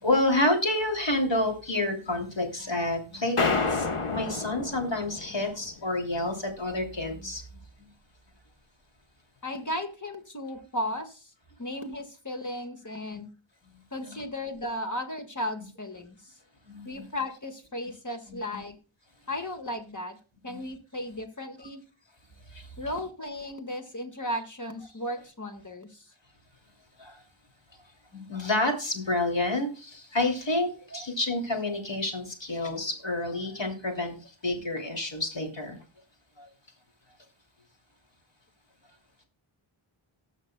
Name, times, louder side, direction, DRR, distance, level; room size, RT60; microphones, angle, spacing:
voice 1, 0.0-7.4 14.1-14.2 16.7-17.1 18.3-18.6 20.5-20.6 27.0-27.1 28.1-34.1 34.4-35.8, left 2 dB, 60° left, 2 dB, 2.9 m, -29 dB
sound 1, 3.4-5.8, left 4 dB, 80° left, 1.2 m, -29 dB
voice 2, 9.4-11.3 11.6-13.3 13.9-16.2 16.8-18.8 19.3-20.2 20.4-21.8 22.8-26.0 30.9-31.0, left 1 dB, 35° left, 6 dB, 1.8 m, -35 dB
19.0 x 6.4 x 2.2 m, 0.36 s
wide cardioid pair, 40°, 50 cm